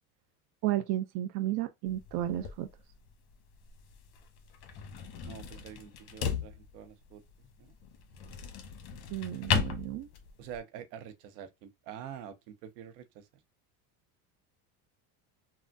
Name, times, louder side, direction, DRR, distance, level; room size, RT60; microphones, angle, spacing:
voice 1, 0.6-2.7 9.1-10.1, right 13 dB, 55° right, 0.5 m, -33 dB
sound 1, 1.9-10.6, left 6 dB, 50° left, 0.8 m, -37 dB
voice 2, 5.2-7.2 7.6-7.8 10.4-13.3, right 9 dB, 80° right, 0.8 m, -46 dB
3.4 x 2.1 x 2.5 m
supercardioid pair, 95°, 47 cm